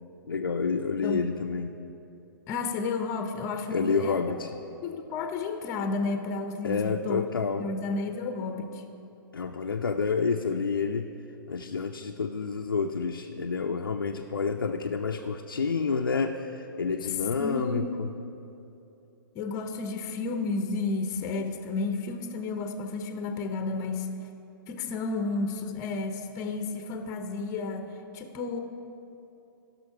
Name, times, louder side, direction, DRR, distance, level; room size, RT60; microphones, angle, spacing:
voice 1, 0.3-1.7 3.7-4.6 6.6-7.7 9.3-11.1 11.5-18.1, left 5 dB, 80° left, 3 dB, 0.5 m, -29 dB
voice 2, 2.5-4.4 4.8-8.8 17.1-18.0 19.3-24.1 24.7-28.6, left 3 dB, 30° left, 7 dB, 0.7 m, -32 dB
16.0 x 6.2 x 4.6 m, 2.9 s
figure-of-eight pair, 115°, 12 cm